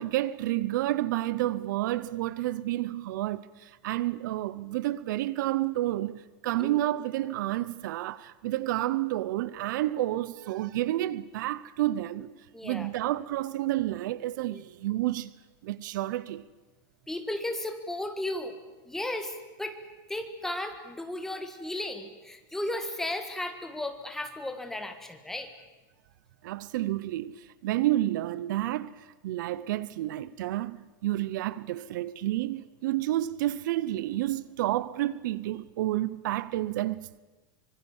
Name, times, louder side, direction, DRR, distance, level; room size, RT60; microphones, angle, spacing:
voice 1, 0.0-12.3 12.6-15.3 15.6-16.4 26.4-30.8 31.0-37.2, right 15 dB, 60° right, 0.8 m, -30 dB
voice 2, 12.5-12.9 14.5-14.6 17.1-18.6 18.8-19.8 20.1-25.5, left 1 dB, 5° left, 1.6 m, -35 dB
25.0 x 23.5 x 7.3 m
supercardioid pair, 175°, 11 cm